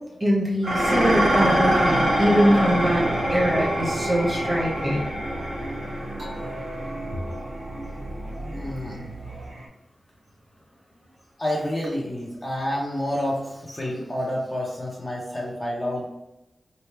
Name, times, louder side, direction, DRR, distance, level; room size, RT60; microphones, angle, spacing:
voice 1, 0.2-3.0 3.3-5.2, equal, 20° right, -4 dB, 1.1 m, -22 dB
Dishes pots and pans, 0.6-9.4, right 1 dB, 50° right, 1.4 m, -25 dB
Singing, 2.0-9.7, right 1 dB, 65° right, 1.2 m, -41 dB
voice 2, 8.6-9.0 11.4-16.1, left 1 dB, 20° left, -4 dB, 0.7 m, -29 dB
3.2 x 2.3 x 4.2 m, 0.91 s
wide cardioid pair, 155°, 0 cm